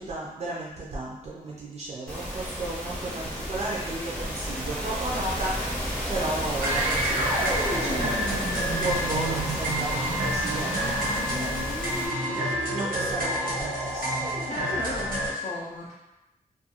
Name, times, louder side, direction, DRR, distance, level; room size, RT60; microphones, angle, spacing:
voice 1, 0.0-8.1 8.6-14.4, right 2 dB, 50° right, -5 dB, 0.4 m, -34 dB
sound 1, 2.1-12.1, equal, 5° left, 0.6 m, -32 dB
sound 2, 6.6-15.3, right 1 dB, 90° right, 0.8 m, -28 dB
sound 3, 7.1-12.5, left 1 dB, 85° left, 0.7 m, -40 dB
voice 2, 14.5-15.9, left 2 dB, 55° left, -5 dB, 0.4 m, -35 dB
2.4 x 2.2 x 2.8 m, 0.98 s
wide cardioid pair, 140°, 14 cm